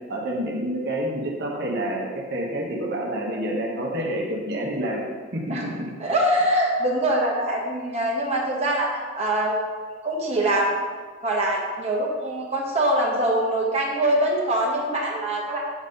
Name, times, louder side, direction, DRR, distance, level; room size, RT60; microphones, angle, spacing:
voice 1, 0.1-5.1 5.3-5.7, right 1 dB, 55° right, -2 dB, 1.1 m, -28 dB
voice 2, 6.0-10.8 11.2-15.6, right 1 dB, 30° right, -3 dB, 1.1 m, -23 dB
7.2 x 4.0 x 5.2 m, 1.5 s
head